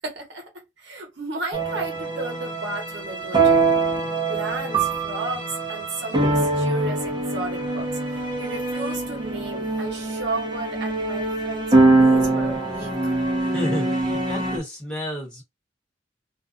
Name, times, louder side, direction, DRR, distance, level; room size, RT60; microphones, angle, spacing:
voice 1, 0.0-3.8 4.3-13.0, right 2 dB, 70° right, 0.9 m, -34 dB
sound 1, 1.5-14.6, right 3 dB, 25° right, 0.8 m, -23 dB
voice 2, 13.4-15.4, equal, 5° left, 1.2 m, -31 dB
2.5 x 2.2 x 2.5 m
head